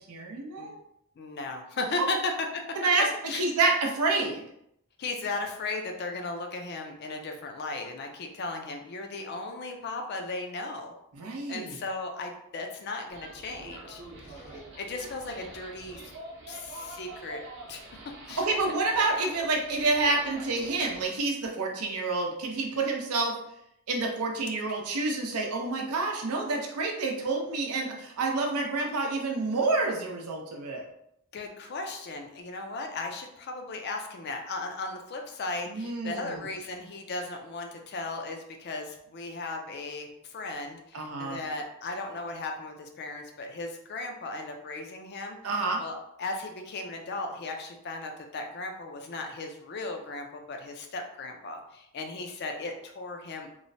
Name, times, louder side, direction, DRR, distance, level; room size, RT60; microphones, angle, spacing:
voice 1, 0.1-0.7 2.8-3.1 3.3-4.4 11.1-11.8 18.4-23.3 23.9-30.8 35.7-36.4 40.9-41.4 45.4-45.8, right 3 dB, 85° right, 0 dB, 0.6 m, -28 dB
voice 2, 1.2-2.3 3.3-3.4 5.0-10.9 11.5-16.1 16.5-17.4 17.7-17.9 18.3-18.4 31.3-53.5, left 3 dB, 45° left, 3 dB, 0.4 m, -36 dB
sound 1, 13.1-21.0, right 2 dB, 50° right, 0.7 m, -45 dB
3.0 x 2.0 x 2.6 m, 0.77 s
head